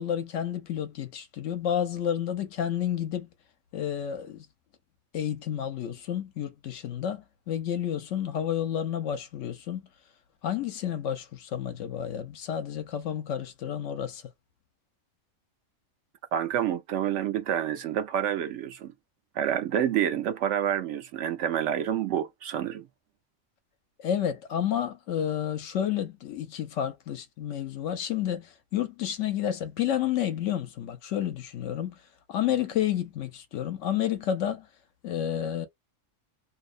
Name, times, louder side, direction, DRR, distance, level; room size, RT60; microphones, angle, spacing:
voice 1, 0.0-3.3 3.7-4.5 5.1-9.8 10.4-14.2 24.0-31.9 32.3-34.7 35.0-35.7, left 10 dB, 70° left, 0.9 m, -30 dB
voice 2, 16.3-18.9 19.3-22.9, right 10 dB, 70° right, 0.8 m, -28 dB
2.7 x 2.0 x 2.4 m
omnidirectional pair, 1.3 m